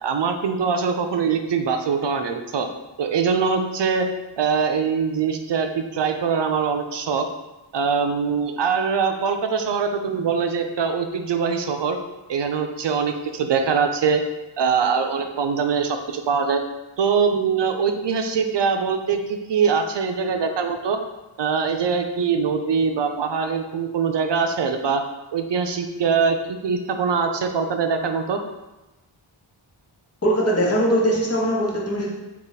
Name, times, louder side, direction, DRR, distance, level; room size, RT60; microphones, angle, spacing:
voice 1, 0.0-2.7 3.0-4.1 4.4-7.3 7.7-12.0 12.3-14.2 14.6-16.6 17.0-21.0 21.4-25.0 25.3-28.4, right 5 dB, 60° right, 6 dB, 0.5 m, -23 dB
voice 2, 30.2-32.1, equal, 30° left, -4 dB, 1.0 m, -21 dB
3.8 x 2.4 x 4.0 m, 1.0 s
wide cardioid pair, 50°, 48 cm